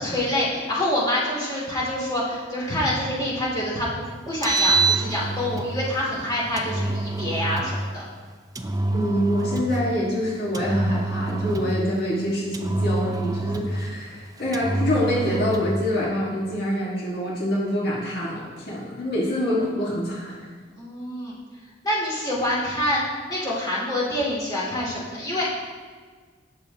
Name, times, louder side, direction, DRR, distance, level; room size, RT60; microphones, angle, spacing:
voice 1, 0.0-8.0 20.8-21.4 21.8-23.0 23.3-25.4, left 1 dB, 20° left, -6 dB, 2.7 m, -26 dB
Engine, 4.3-5.7 6.6-7.7 8.5-9.8 10.5-11.8 12.5-13.9 14.5-15.8, right 2 dB, 20° right, 0.5 m, -26 dB
voice 2, 8.9-20.5, equal, 55° left, -5 dB, 1.8 m, -25 dB
18.0 x 6.8 x 2.9 m, 1.5 s
head